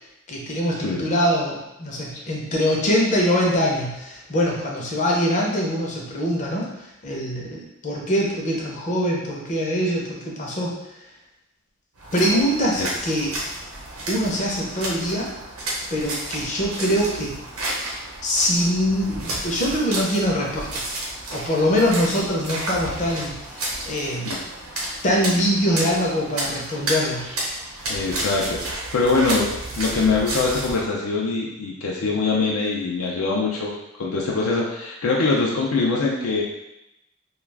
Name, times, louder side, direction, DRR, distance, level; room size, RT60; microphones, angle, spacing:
voice 1, 0.3-10.7 12.1-13.3 14.1-15.3 15.9-17.4 18.2-20.8 21.3-24.3 25.0-27.2, equal, 35° left, -2 dB, 0.6 m, -23 dB
sound 1, 12.0-30.8, right 1 dB, 90° right, 0.8 m, -31 dB
voice 2, 27.9-29.5 29.8-36.4, left 3 dB, 85° left, -3 dB, 0.5 m, -23 dB
2.3 x 2.3 x 3.3 m, 0.89 s
head